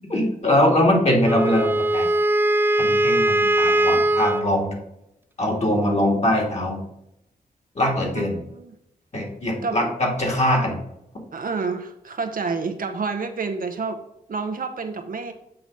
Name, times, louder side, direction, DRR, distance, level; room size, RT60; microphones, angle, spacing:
voice 1, 0.1-2.1 2.8-4.7 5.4-6.8 7.8-8.3 9.1-10.8, left 1 dB, 45° left, -1 dB, 2.5 m, -22 dB
Wind instrument woodwind instrument, 1.2-4.5, right 1 dB, 15° right, 0.5 m, -20 dB
voice 2, 8.1-8.7 9.6-9.8 11.3-14.0 14.3-15.3, right 4 dB, 60° right, 6 dB, 0.8 m, -29 dB
7.7 x 3.0 x 5.3 m, 0.83 s
cardioid pair, 55°, 16 cm